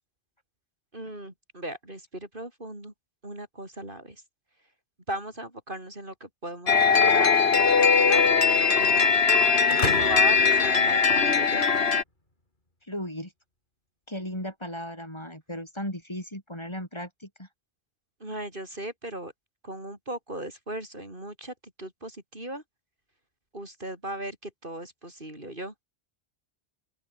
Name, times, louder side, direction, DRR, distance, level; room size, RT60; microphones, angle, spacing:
voice 1, 0.9-2.9 3.2-4.2 5.1-9.1 9.9-11.7 18.2-19.3 19.6-22.6 23.5-25.7, right 1 dB, 55° right, 6.5 m, -37 dB
sound 1, 6.7-12.0, left 5 dB, 70° left, 1.7 m, -20 dB
sound 2, 9.7-11.6, left 1 dB, 50° left, 5.7 m, -34 dB
voice 2, 12.9-13.3 14.1-17.5, equal, 25° left, 6.1 m, -36 dB
open air
omnidirectional pair, 1.1 m